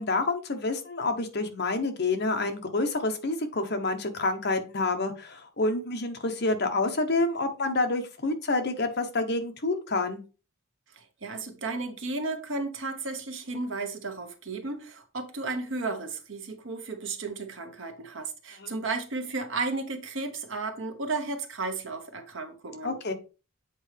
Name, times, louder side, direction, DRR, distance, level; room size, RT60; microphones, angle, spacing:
voice 1, 0.0-10.2 18.6-18.7 22.8-23.1, left 2 dB, 55° left, 1.1 m, -28 dB
voice 2, 11.0-23.0, right 3 dB, 65° right, 1.1 m, -34 dB
7.9 x 4.6 x 3.4 m
head